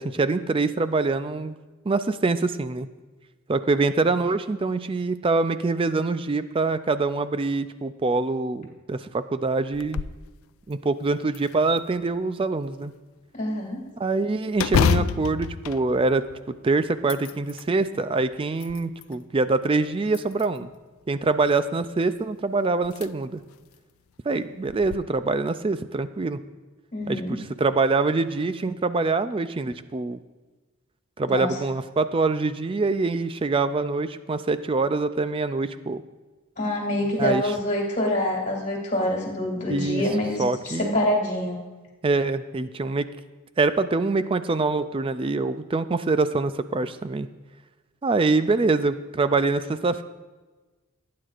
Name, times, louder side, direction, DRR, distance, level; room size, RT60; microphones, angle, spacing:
voice 1, 0.0-1.6 1.9-2.9 3.5-10.0 10.7-12.9 14.0-16.2 16.6-20.7 21.1-23.4 24.3-26.4 27.1-30.2 31.2-36.0 37.2-37.4 39.7-40.0 40.4-41.1 42.0-43.1 43.6-47.3 48.0-50.0, right 3 dB, 25° right, 12 dB, 0.3 m, -24 dB
sound 1, 9.7-10.3 10.7-10.8 11.3-12.2 14.6-16.6 17.0-17.7 18.3-19.2 20.1-20.8 22.2-22.3 22.8-23.1 23.5-23.6 24.7-25.0, left 7 dB, 70° left, 0.3 m, -27 dB
voice 2, 13.3-13.8 26.9-27.4 31.3-31.5 36.6-41.6, left 1 dB, 35° left, -2 dB, 2.8 m, -26 dB
18.5 x 9.4 x 2.5 m, 1.3 s
head